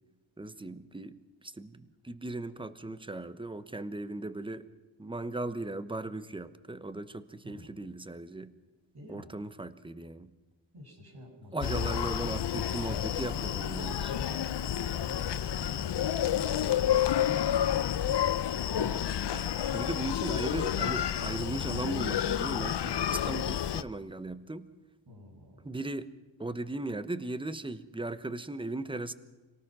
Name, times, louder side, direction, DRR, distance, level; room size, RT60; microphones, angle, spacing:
voice 1, 0.4-4.7 5.0-8.5 9.1-10.3 11.5-14.1 18.7-19.0 19.3-19.5 19.7-24.7 25.6-26.1 26.4-29.1, right 2 dB, 10° right, 13 dB, 0.9 m, -37 dB
voice 2, 8.9-9.4 10.7-11.9 13.9-17.8 19.5-20.2 25.1-25.7, left 1 dB, 55° right, 0 dB, 6.9 m, -49 dB
Screaming, 11.6-23.8, left 10 dB, 60° left, 0.7 m, -30 dB
26.0 x 18.0 x 6.1 m, 1.2 s
wide cardioid pair, 95°, 47 cm